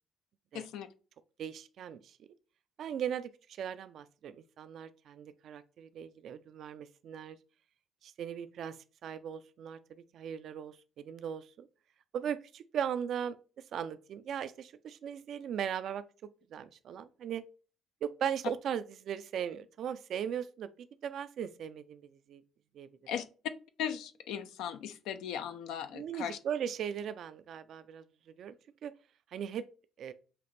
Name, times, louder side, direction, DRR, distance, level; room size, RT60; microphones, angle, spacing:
voice 1, 0.5-0.9 23.1-23.2 23.8-26.4, left 9 dB, 85° left, 0.5 m, -38 dB
voice 2, 1.4-2.2 2.8-7.4 8.0-8.8 9.0-9.8 10.1-11.7 12.1-16.0 16.5-17.4 18.0-22.4 22.7-22.9 25.9-28.0 28.4-28.5 28.8-28.9 29.3-29.6 30.0-30.1, right 8 dB, 65° right, 0.3 m, -38 dB
5.7 x 2.5 x 3.2 m
cardioid pair, 85°, 0 cm